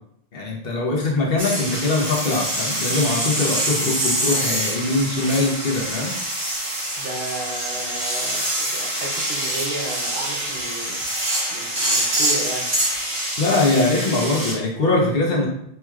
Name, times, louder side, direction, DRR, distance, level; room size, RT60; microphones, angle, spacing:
voice 1, 0.3-6.1 13.4-15.5, left 2 dB, 65° left, -2 dB, 1.0 m, -22 dB
sound 1, 1.4-14.5, right 1 dB, 30° right, 1.0 m, -25 dB
voice 2, 7.0-11.0 11.5-12.7, right 2 dB, 65° right, -1 dB, 1.0 m, -33 dB
4.5 x 2.8 x 2.3 m, 0.75 s
omnidirectional pair, 1.1 m